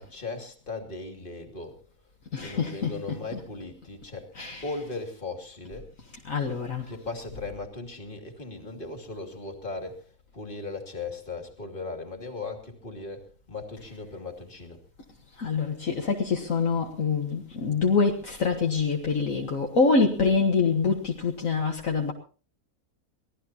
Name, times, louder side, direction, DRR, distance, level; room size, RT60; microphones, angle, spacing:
voice 1, 0.0-1.8 2.4-4.3 4.6-5.9 6.9-14.8, left 3 dB, 35° left, 2.9 m, -38 dB
voice 2, 2.3-2.9 4.4-4.6 6.3-6.9 15.4-22.1, left 4 dB, 60° left, 1.9 m, -25 dB
24.0 x 17.5 x 2.9 m
omnidirectional pair, 1.6 m